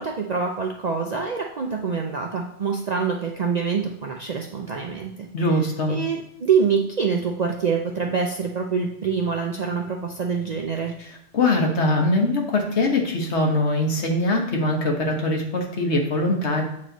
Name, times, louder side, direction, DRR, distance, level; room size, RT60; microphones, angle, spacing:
voice 1, 0.0-5.3 5.9-10.9, right 5 dB, 50° right, 1 dB, 0.5 m, -25 dB
voice 2, 5.3-6.0 11.0-16.6, left 2 dB, 65° left, 1 dB, 1.4 m, -22 dB
8.4 x 3.2 x 3.9 m, 0.76 s
omnidirectional pair, 1.3 m